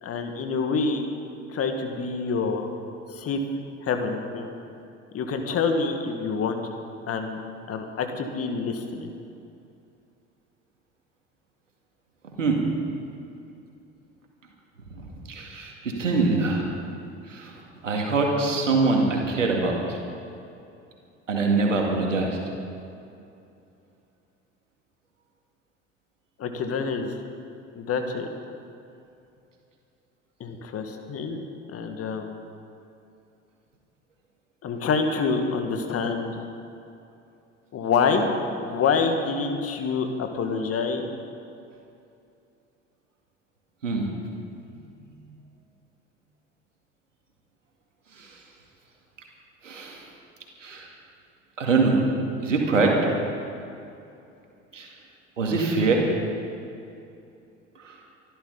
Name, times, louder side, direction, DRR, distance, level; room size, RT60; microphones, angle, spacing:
voice 1, 0.0-1.0 1.5-2.7 3.1-4.5 5.1-6.6 7.1-7.4 7.7-9.1 26.4-27.1 27.8-28.3 30.4-31.4 31.7-32.3 34.6-36.4 37.7-41.1, left 4 dB, 40° left, 5 dB, 2.0 m, -27 dB
voice 2, 15.0-16.7 17.3-17.5 17.8-20.0 21.3-22.4 43.8-44.1 44.7-45.1 48.1-48.4 49.6-50.0 50.6-50.9 51.6-52.0 52.4-53.0 54.7-54.9 55.4-56.1 57.8-57.9, right 3 dB, 85° right, 0 dB, 2.4 m, -24 dB
25.0 x 12.5 x 4.1 m, 2.6 s
figure-of-eight pair, 65°, 37 cm